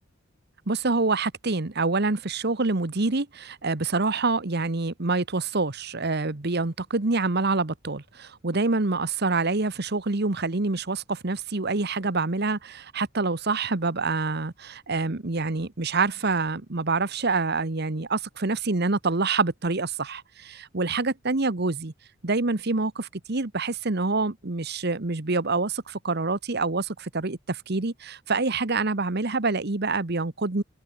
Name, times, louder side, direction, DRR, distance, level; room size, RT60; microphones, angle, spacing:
voice 1, 0.7-21.9 22.2-30.6, right 3 dB, 55° right, 1.3 m, -26 dB
head